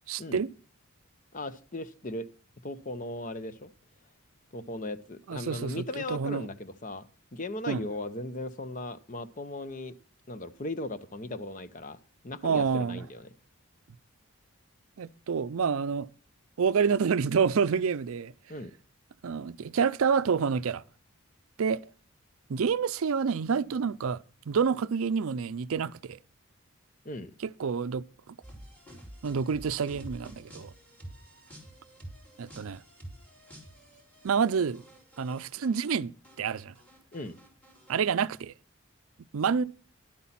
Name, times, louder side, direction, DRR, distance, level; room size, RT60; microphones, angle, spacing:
voice 1, 0.1-0.5 5.3-6.5 7.7-7.9 12.4-13.0 15.0-16.1 16.6-18.3 19.2-20.8 21.6-21.8 22.5-26.2 27.4-28.4 29.2-30.7 32.4-32.8 34.2-34.8 35.2-36.1 36.4-36.7 37.9-38.5 39.3-39.6, right 6 dB, 75° right, 0.5 m, -28 dB
voice 2, 1.3-2.3 2.6-3.7 4.5-7.0 7.3-9.9 10.3-12.0 12.2-13.3 18.5-18.7 27.0-27.3 37.1-37.4, left 2 dB, 35° left, 0.7 m, -37 dB
sound 1, 28.4-36.0 36.2-38.0, right 1 dB, 5° left, 3.8 m, -49 dB
11.0 x 8.3 x 5.7 m
head